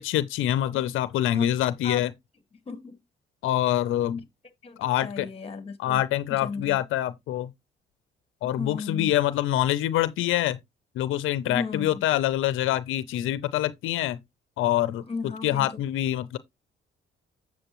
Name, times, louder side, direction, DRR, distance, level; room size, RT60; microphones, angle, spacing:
voice 1, 0.0-2.1 3.4-4.2 4.8-5.3 5.8-7.5 8.4-10.6 11.0-14.2 14.6-15.0 15.4-16.4, left 13 dB, 85° left, 0.6 m, -25 dB
voice 2, 2.6-3.0 4.6-6.0 6.3-6.8 8.4-9.1 11.4-12.0 15.1-15.7, left 4 dB, 30° left, 1.7 m, -35 dB
7.8 x 7.4 x 3.0 m
cardioid pair, 90°, 20 cm